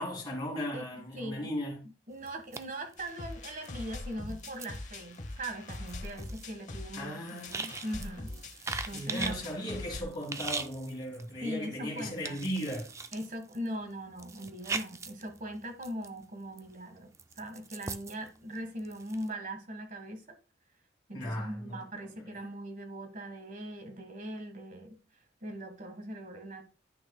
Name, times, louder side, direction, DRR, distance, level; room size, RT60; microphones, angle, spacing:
voice 1, 0.0-1.8 6.9-7.6 8.9-12.9 21.1-21.8, equal, 25° left, 2.2 m, -36 dB
voice 2, 0.7-1.5 2.1-8.3 8.6-9.4 11.4-12.4 13.1-20.4 21.1-25.0 25.4-26.6, right 1 dB, 45° right, 1.6 m, -40 dB
sound 1, 2.1-3.8 4.1-9.6 10.1-11.5 11.9-16.2 16.6-19.3, right 4 dB, 15° right, 0.3 m, -41 dB
sound 2, 3.0-10.0, left 2 dB, 45° left, 0.8 m, -43 dB
10.5 x 6.2 x 2.2 m
head